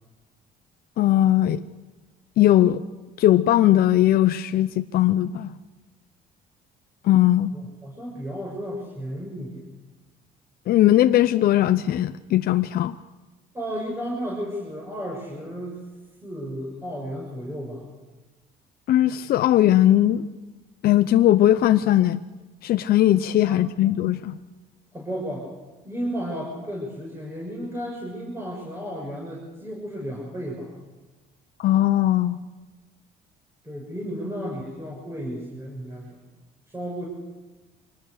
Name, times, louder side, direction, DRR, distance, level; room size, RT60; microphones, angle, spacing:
voice 1, 1.0-1.6 2.4-2.8 3.2-5.5 7.0-7.5 10.7-12.9 18.9-20.3 20.8-22.2 22.6-24.3 31.6-32.4, left 13 dB, 65° left, 9 dB, 0.8 m, -19 dB
voice 2, 7.5-9.7 13.5-15.8 16.2-17.9 23.4-23.6 24.9-25.5 25.8-30.8 33.6-36.2 36.7-37.0, equal, 15° right, -3 dB, 6.7 m, -33 dB
26.0 x 20.0 x 6.7 m, 1.2 s
cardioid pair, 110°, 17 cm